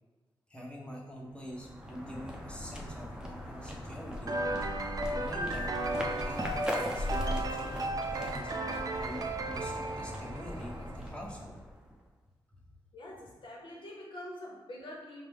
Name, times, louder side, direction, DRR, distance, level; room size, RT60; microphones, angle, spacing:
voice 1, 0.5-4.4 5.1-7.8 8.1-8.5 9.0-11.6, equal, 10° left, -3 dB, 1.0 m, -44 dB
sound 1, 1.3-12.0, left 1 dB, 10° right, 0.7 m, -39 dB
sound 2, 4.3-10.9, right 2 dB, 45° right, 0.4 m, -35 dB
voice 2, 12.9-15.3, left 1 dB, 70° left, -2 dB, 1.0 m, -45 dB
4.9 x 2.2 x 3.5 m, 1.2 s
cardioid pair, 70°, 9 cm